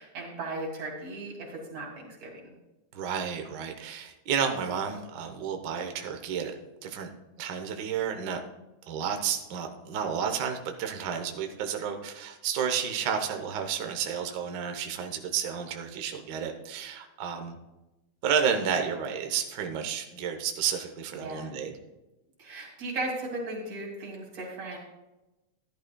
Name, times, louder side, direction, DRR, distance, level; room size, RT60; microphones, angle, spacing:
voice 1, 0.0-2.5 21.1-21.5 22.4-24.8, right 2 dB, 60° right, -1 dB, 3.7 m, -36 dB
voice 2, 2.9-6.5 6.8-7.1 7.4-8.4 8.9-17.5 18.2-21.7, right 7 dB, 80° right, 5 dB, 0.9 m, -31 dB
14.0 x 11.0 x 2.3 m, 1.0 s
omnidirectional pair, 3.4 m